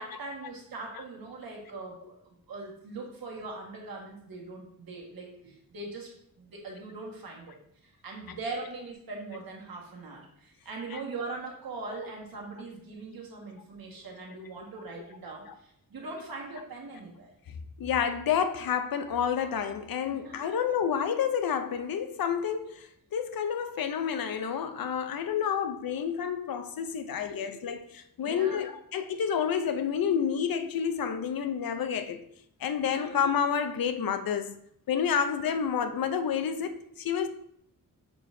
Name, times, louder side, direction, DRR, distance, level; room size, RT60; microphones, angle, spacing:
voice 1, 0.0-6.1 6.4-7.5 7.8-17.3 20.1-20.5 27.3-27.5 28.2-28.6 32.8-33.1, right 3 dB, 90° right, 1.7 m, -41 dB
voice 2, 17.8-32.2 32.6-34.6 34.9-37.3, left 7 dB, 80° left, 0.7 m, -29 dB
6.8 x 6.3 x 2.7 m
wide cardioid pair, 170°, 34 cm